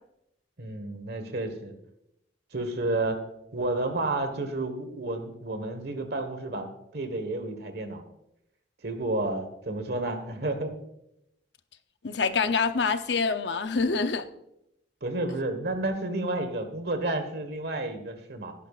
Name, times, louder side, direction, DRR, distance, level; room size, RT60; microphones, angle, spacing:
voice 1, 0.6-1.7 2.5-3.2 3.5-6.7 6.9-8.0 8.8-10.8 15.0-18.5, right 2 dB, 60° right, 7 dB, 1.5 m, -31 dB
voice 2, 12.0-14.3, left 4 dB, 75° left, 10 dB, 0.7 m, -26 dB
16.5 x 10.0 x 2.5 m, 0.82 s
head